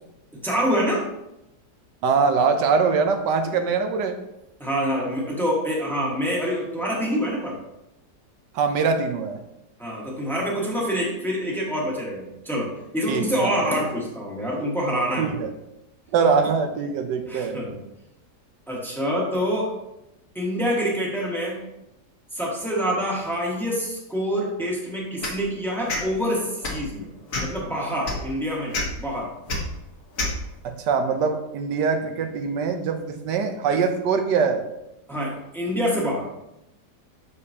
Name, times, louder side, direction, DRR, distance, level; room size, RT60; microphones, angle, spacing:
voice 1, 0.3-1.1 4.6-7.6 9.8-15.4 17.3-17.8 18.7-19.7 20.3-21.6 22.3-27.1 27.4-29.3 35.1-36.3, equal, ahead, -3 dB, 1.4 m, -26 dB
voice 2, 2.0-4.2 8.5-9.4 13.1-13.6 15.2-15.5 16.1-17.6 30.6-34.6, right 5 dB, 85° right, 6 dB, 1.4 m, -23 dB
sound 1, 25.2-25.4 25.9-26.0 26.6-26.8 27.3-27.6 28.0-28.2 28.7-28.8 29.5-29.6 30.2-30.3, left 2 dB, 55° left, 1.6 m, -27 dB
6.8 x 6.5 x 2.8 m, 0.88 s
omnidirectional pair, 1.8 m